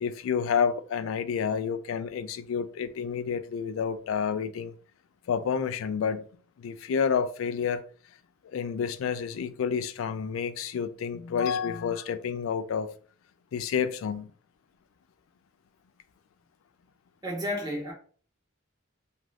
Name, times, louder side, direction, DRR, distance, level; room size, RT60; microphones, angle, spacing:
voice 1, 0.0-4.7 5.3-6.3 6.6-7.8 8.4-12.9 13.5-14.3, left 6 dB, 85° left, 0.3 m, -29 dB
voice 2, 17.2-17.9, left 1 dB, 20° right, 0.8 m, -31 dB
2.6 x 2.3 x 3.2 m
head